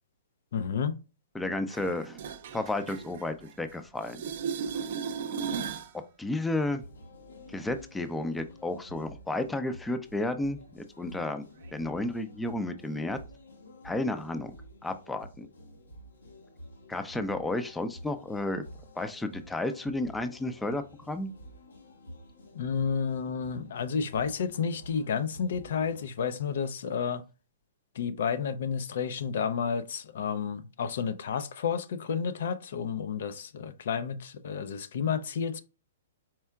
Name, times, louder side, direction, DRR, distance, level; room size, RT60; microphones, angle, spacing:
voice 1, 0.5-1.0 22.6-27.2 28.0-35.6, left 6 dB, 65° left, 0.4 m, -31 dB
voice 2, 1.3-2.2 2.5-4.2 5.9-6.8 7.5-11.5 11.7-13.2 13.8-14.5 14.8-15.5 16.9-18.6 19.0-21.3, left 2 dB, 5° left, 0.4 m, -32 dB
sound 1, 1.7-3.8 4.0-5.9 11.7-11.8, right 6 dB, 60° right, 0.6 m, -36 dB
sound 2, 6.6-26.1, equal, 90° left, 1.1 m, -50 dB
4.4 x 3.5 x 2.2 m
hypercardioid pair, 135°, 0 cm